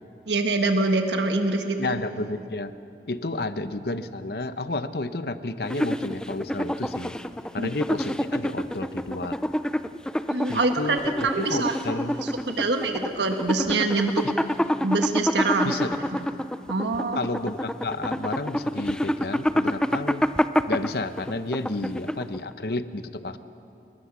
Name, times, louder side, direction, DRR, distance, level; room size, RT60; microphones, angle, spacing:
voice 1, 0.3-2.0 7.6-7.7 10.3-11.0 11.2-11.8 12.5-14.3 14.8-15.8 16.1-16.2 16.7-17.2, right 3 dB, 85° right, 5 dB, 1.4 m, -24 dB
voice 2, 1.8-2.7 3.0-7.1 7.5-9.4 10.5-11.0 11.4-12.2 14.2-14.3 15.6-16.0 17.2-20.3 20.7-23.4, left 2 dB, 60° left, 11 dB, 0.9 m, -31 dB
sound 1, 5.6-22.5, equal, 5° left, 0.4 m, -27 dB
29.5 x 20.0 x 6.1 m, 2.7 s
head